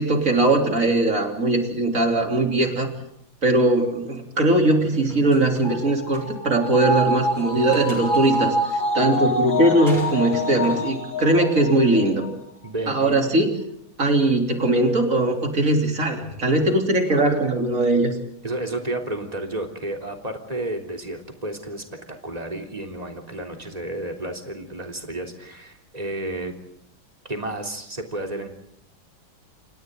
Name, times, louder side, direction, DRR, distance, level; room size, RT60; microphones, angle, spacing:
voice 1, 0.0-2.9 3.4-12.3 12.9-13.5 14.0-18.2, right 2 dB, 40° right, 3 dB, 3.8 m, -20 dB
sound 1, 4.8-5.8 6.1-6.3 7.3-8.4 9.9-10.9, equal, 20° left, 6.8 m, -41 dB
sound 2, 5.6-12.3 12.7-12.8, equal, 70° left, 4.5 m, -26 dB
voice 2, 12.6-13.2 18.4-26.5 27.2-28.5, right 1 dB, 20° right, 3 dB, 3.4 m, -31 dB
29.5 x 27.5 x 3.9 m, 0.77 s
omnidirectional pair, 2.2 m